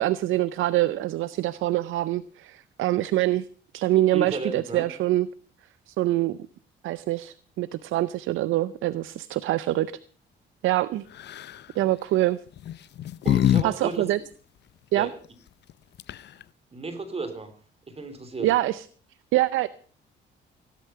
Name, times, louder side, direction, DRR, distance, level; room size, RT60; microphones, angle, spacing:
voice 1, 0.0-3.4 3.7-5.3 5.9-6.4 6.8-9.9 10.6-11.1 11.7-12.4 13.6-14.2 14.9-15.1 18.4-18.8 19.3-19.7, right 15 dB, 85° right, 16 dB, 0.6 m, -24 dB
voice 2, 4.1-4.8 13.2-14.1 14.9-15.2 16.7-17.5 17.9-18.5, right 3 dB, 30° right, 9 dB, 3.2 m, -33 dB
sound 1, 11.2-11.6 12.6-13.7 13.9-14.0 15.7-15.8 16.0-16.4, left 11 dB, 60° left, 0.6 m, -24 dB
17.0 x 11.5 x 5.7 m, 0.44 s
cardioid pair, 90°, 20 cm